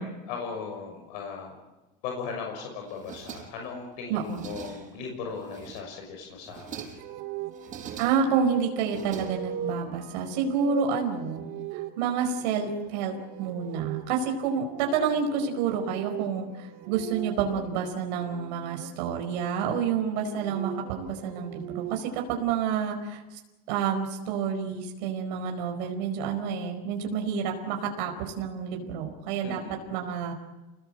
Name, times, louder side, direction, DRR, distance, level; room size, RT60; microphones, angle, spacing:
voice 1, 0.3-1.6 2.0-6.8 29.4-29.9, left 5 dB, 80° left, 2 dB, 6.2 m, -37 dB
sound 1, 2.9-3.8 4.1-5.0 5.4-6.0 6.4-7.1 7.5-8.4 8.8-9.8, right 7 dB, 35° right, 5.5 m, -43 dB
voice 2, 4.1-4.5 8.0-11.5 11.7-23.4 23.7-29.6 29.9-30.3, right 6 dB, 85° right, 3 dB, 5.0 m, -29 dB
sound 2, 7.0-18.9 20.0-22.2, right 9 dB, 65° right, 3.1 m, -40 dB
28.5 x 20.5 x 7.8 m, 1.1 s
cardioid pair, 145°, 21 cm